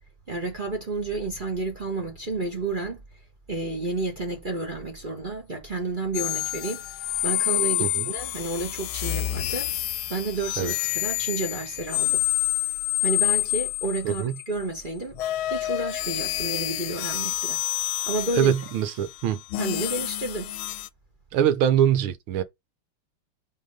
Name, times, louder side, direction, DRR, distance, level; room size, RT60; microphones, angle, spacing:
voice 1, 0.3-3.0 3.5-6.8 7.2-9.7 10.1-12.2 13.0-15.2 15.5-17.6 18.1-18.5 19.6-20.5, right 2 dB, 30° right, 1.1 m, -31 dB
sound 1, 6.1-14.4 15.1-20.9, left 16 dB, 80° left, 1.3 m, -28 dB
voice 2, 18.4-19.4 21.3-22.4, right 10 dB, 85° right, 1.7 m, -23 dB
5.5 x 3.5 x 5.3 m
omnidirectional pair, 2.3 m